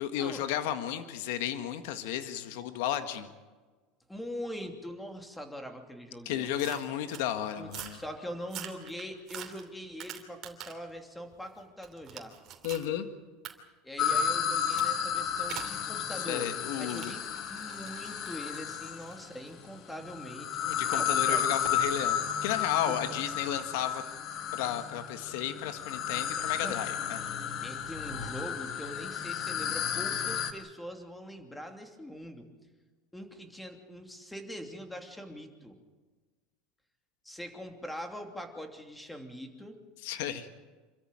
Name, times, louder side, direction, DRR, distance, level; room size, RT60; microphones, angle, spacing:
voice 1, 0.0-3.3 6.2-8.0 12.6-13.1 16.3-17.1 20.6-24.0 24.5-27.2 40.0-40.5, left 11 dB, 75° left, 9 dB, 1.7 m, -33 dB
voice 2, 4.1-6.5 7.6-12.3 13.8-16.5 16.8-20.5 20.9-21.5 22.9-23.2 26.6-26.8 27.6-32.5 33.1-35.8 37.2-39.8, equal, 5° left, 5 dB, 2.8 m, -42 dB
sound 1, 6.6-7.3 7.7-8.0 8.4-10.9 11.3-12.9 13.4-13.5 14.7-14.9 15.5-15.8 16.7-20.6 21.6-21.8, right 10 dB, 40° right, 2.9 m, -45 dB
sound 2, 14.0-19.2 20.0-30.5, left 8 dB, 40° left, 1.7 m, -32 dB
27.0 x 14.0 x 9.0 m, 1.3 s
supercardioid pair, 135°, 0 cm